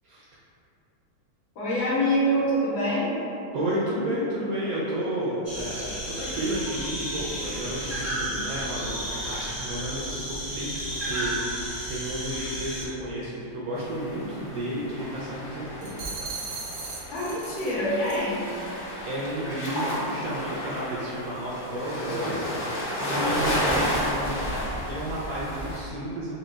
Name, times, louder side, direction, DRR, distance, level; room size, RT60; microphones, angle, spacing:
voice 1, 1.6-3.1 17.1-18.5, equal, 85° left, -9 dB, 1.9 m, -25 dB
voice 2, 3.5-16.3 19.0-26.3, right 1 dB, 65° right, -7 dB, 0.9 m, -32 dB
sound 1, 5.4-12.8, equal, 15° right, 0.5 m, -33 dB
sound 2, 13.7-25.8, equal, 50° left, 0.6 m, -32 dB
sound 3, 15.8-17.7 18.1-18.3, right 4 dB, 90° right, 1.5 m, -37 dB
4.2 x 2.3 x 3.8 m, 2.8 s
omnidirectional pair, 2.0 m